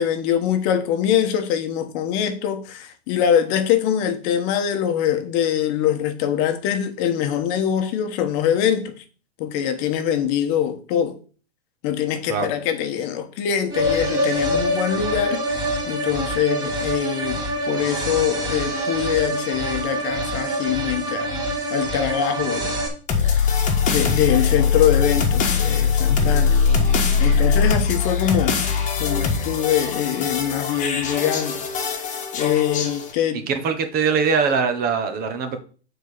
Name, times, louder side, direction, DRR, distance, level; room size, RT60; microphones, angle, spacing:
voice 1, 0.0-8.9 9.4-11.2 11.8-15.4 15.9-17.4 17.7-21.3 21.7-22.8 23.3-23.6 23.9-26.6 27.2-28.6 29.0-31.6 32.3-33.4, left 9 dB, 40° left, 1.1 m, -23 dB
sound 1, 13.7-22.9, equal, 10° right, 2.1 m, -25 dB
sound 2, 23.1-33.1, left 6 dB, 20° left, 1.5 m, -21 dB
voice 2, 33.3-35.6, right 5 dB, 25° right, 1.2 m, -22 dB
6.4 x 4.6 x 6.6 m
hypercardioid pair, 135°, 34 cm